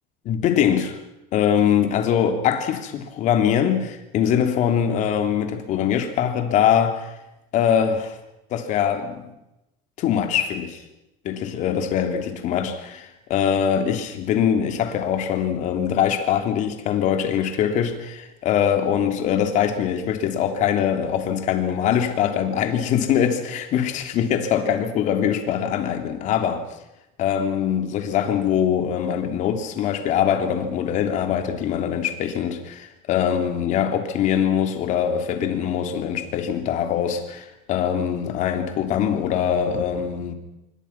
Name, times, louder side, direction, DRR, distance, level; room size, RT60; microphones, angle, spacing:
voice 1, 0.2-1.0 1.3-7.1 7.5-8.2 8.5-9.3 10.0-10.8 11.2-26.6 27.2-40.3, left 8 dB, 50° left, 3.2 m, -22 dB
27.0 x 23.5 x 6.0 m
cardioid pair, 160°, 17 cm